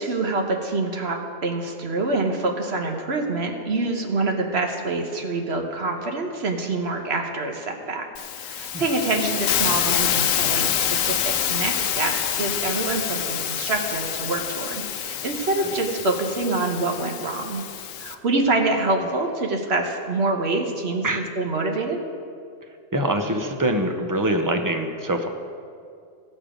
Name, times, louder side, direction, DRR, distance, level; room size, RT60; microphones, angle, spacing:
voice 1, 0.0-8.1 8.4-17.6 18.0-22.0, right 2 dB, 55° right, 2 dB, 1.2 m, -26 dB
Hiss, 8.2-18.2, left 9 dB, 85° left, 1.0 m, -26 dB
voice 2, 22.9-25.3, right 1 dB, 25° right, 5 dB, 0.5 m, -24 dB
15.5 x 6.5 x 5.1 m, 2.4 s
omnidirectional pair, 1.3 m